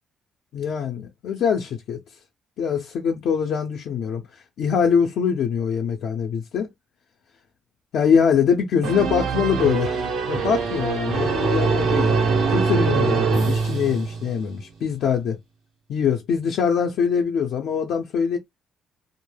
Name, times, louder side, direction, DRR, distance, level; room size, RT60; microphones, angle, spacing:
voice 1, 0.5-2.0 2.6-4.2 4.6-6.7 7.9-12.1 12.5-15.4 15.9-18.4, left 7 dB, 75° left, 0.5 m, -23 dB
sound 1, 8.8-14.5, right 5 dB, 85° right, 0.8 m, -23 dB
2.2 x 2.0 x 3.2 m
cardioid pair, 90°, 0 cm